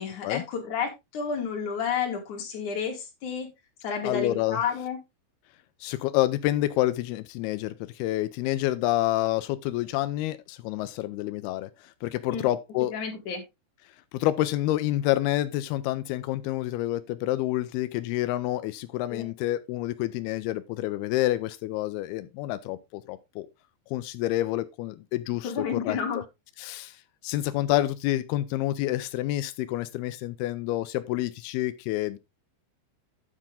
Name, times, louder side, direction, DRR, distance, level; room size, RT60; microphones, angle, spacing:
voice 1, 0.0-3.5 3.8-5.0 12.3-12.5 12.9-13.4 19.1-19.2 25.4-26.2, left 6 dB, 45° left, 3.5 m, -31 dB
voice 2, 4.0-4.6 5.8-12.9 14.1-23.5 23.9-26.0 26.6-27.0 27.2-32.2, left 15 dB, 90° left, 2.2 m, -28 dB
9.9 x 7.4 x 3.5 m
omnidirectional pair, 5.3 m